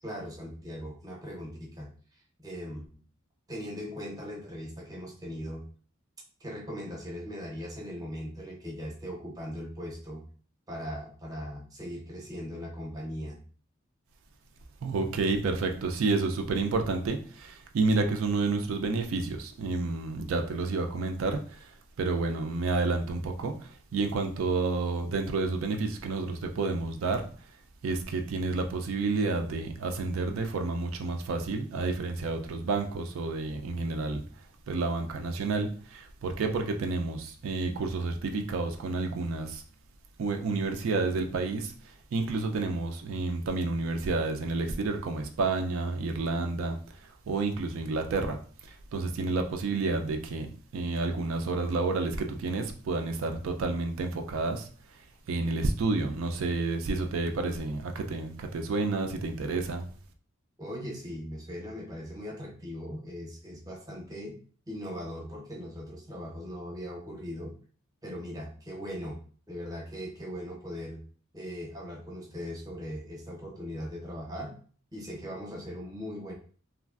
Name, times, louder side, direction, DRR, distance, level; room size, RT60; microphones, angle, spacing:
voice 1, 0.0-1.9 2.4-3.0 3.5-5.7 6.4-10.2 10.7-13.4 60.6-64.4 64.7-67.5 68.0-69.2 69.5-71.0 71.3-74.5 74.9-76.3, equal, 20° right, -1 dB, 0.6 m, -39 dB
voice 2, 14.8-21.7 22.0-27.3 27.8-34.2 34.7-39.6 40.2-54.7 55.3-59.9, right 3 dB, 85° right, 5 dB, 0.4 m, -30 dB
3.0 x 2.4 x 2.3 m, 0.43 s
head